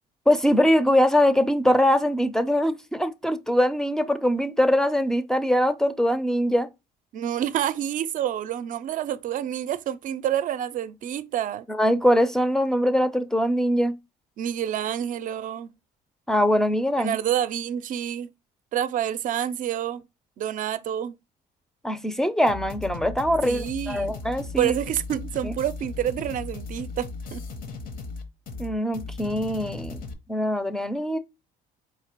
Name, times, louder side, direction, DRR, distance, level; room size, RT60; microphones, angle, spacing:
voice 1, 0.3-6.7 11.7-14.0 16.3-17.2 21.8-24.7 25.4-25.5 28.6-30.0 30.3-31.2, equal, 5° left, 0.5 m, -22 dB
voice 2, 7.1-11.6 14.4-15.7 17.0-18.3 18.7-20.0 20.4-21.1 23.4-24.1 24.6-27.4, right 10 dB, 50° right, 0.5 m, -28 dB
sound 1, 22.5-30.1, left 3 dB, 55° left, 0.9 m, -37 dB
4.8 x 2.8 x 2.9 m
cardioid pair, 110°, 17 cm